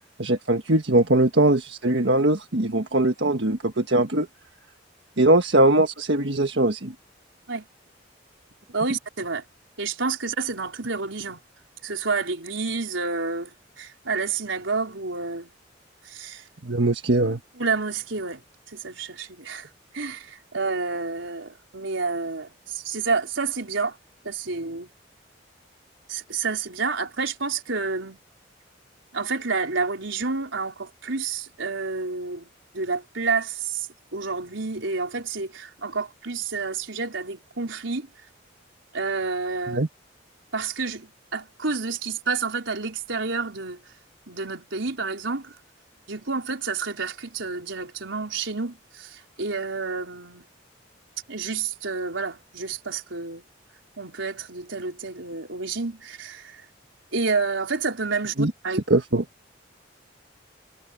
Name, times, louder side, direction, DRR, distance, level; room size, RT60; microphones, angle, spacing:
voice 1, 0.2-4.3 5.2-6.9 16.6-17.4 39.7-39.9 58.4-58.5 58.9-59.2, right 2 dB, 65° right, 1.6 m, -21 dB
voice 2, 8.7-9.4 9.8-11.4 11.8-15.5 16.0-16.4 17.6-18.4 18.7-19.7 19.9-24.0 24.2-24.9 26.1-28.2 29.1-32.5 32.7-33.9 34.1-38.1 38.9-39.8 40.5-43.8 44.3-45.5 46.1-50.5 51.3-53.4 54.0-56.6 57.1-58.8, right 4 dB, 85° right, 4.1 m, -29 dB
head